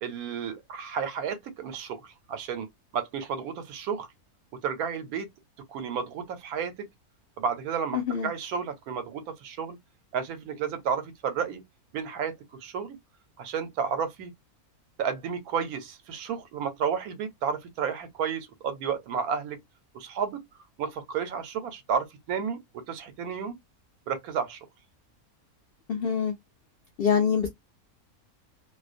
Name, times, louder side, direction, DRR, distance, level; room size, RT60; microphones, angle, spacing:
voice 1, 0.0-2.7 2.9-4.1 4.6-5.3 5.7-6.7 7.4-9.8 10.1-11.6 11.9-12.4 12.6-13.0 13.4-14.3 15.0-19.6 19.9-20.4 20.8-23.6 24.1-24.6, right 7 dB, 80° right, 1.1 m, -32 dB
voice 2, 7.9-8.3 25.9-26.3 27.0-27.5, left 7 dB, 80° left, 0.5 m, -25 dB
2.5 x 2.2 x 2.4 m
omnidirectional pair, 1.5 m